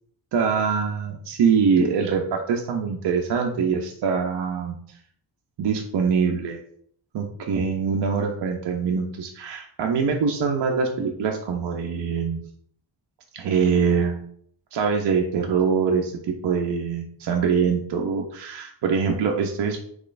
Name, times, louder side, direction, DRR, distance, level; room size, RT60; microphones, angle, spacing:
voice 1, 0.3-4.8 5.6-6.6 7.1-12.4 13.3-14.2 14.7-16.1 16.4-19.8, right 6 dB, 65° right, 1 dB, 0.6 m, -23 dB
3.8 x 3.1 x 2.5 m, 0.62 s
cardioid pair, 100°, 46 cm